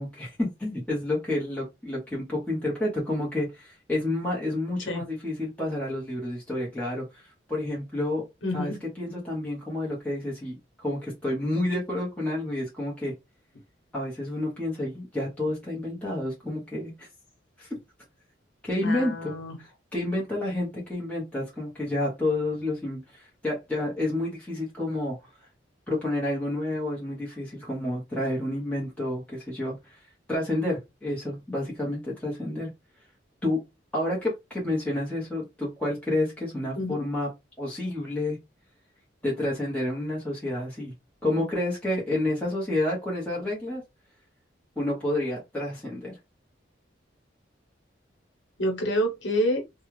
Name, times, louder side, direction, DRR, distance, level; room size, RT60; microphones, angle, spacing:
voice 1, 0.0-8.3 8.5-13.1 13.9-17.1 17.6-17.7 18.6-19.3 19.6-25.2 25.9-30.0 30.3-32.7 33.4-33.6 33.9-37.3 37.6-38.4 39.2-40.9 41.2-43.8 44.8-46.2, left 1 dB, 5° left, 1.1 m, -29 dB
voice 2, 8.4-8.8 18.8-19.6 36.7-37.0 48.6-49.6, equal, 80° left, 1.0 m, -27 dB
3.2 x 2.3 x 3.1 m
head